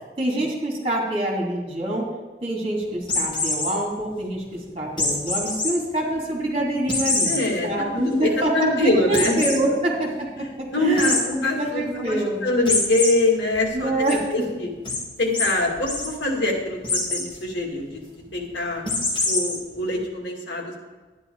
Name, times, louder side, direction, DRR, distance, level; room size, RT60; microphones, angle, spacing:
voice 1, 0.0-2.1 2.4-7.4 7.6-12.4 13.7-14.3, right 1 dB, 30° right, -2 dB, 2.7 m, -26 dB
sound 1, 3.0-3.7 5.0-5.7 6.1-6.2 6.9-7.4 7.9-8.0 8.3-8.4 9.1-9.6 11.0-11.2 12.7-13.1 13.5-14.1 14.9-15.0 15.3-15.5 15.8-16.1 16.8-17.2 18.9-19.5, left 3 dB, 25° left, 2.7 m, -24 dB
voice 2, 7.2-7.7 7.9-9.4 10.4-14.7 15.2-18.0 18.3-18.8 19.2-20.8, left 2 dB, 85° left, 1 dB, 2.3 m, -24 dB
11.5 x 9.8 x 4.7 m, 1.3 s
head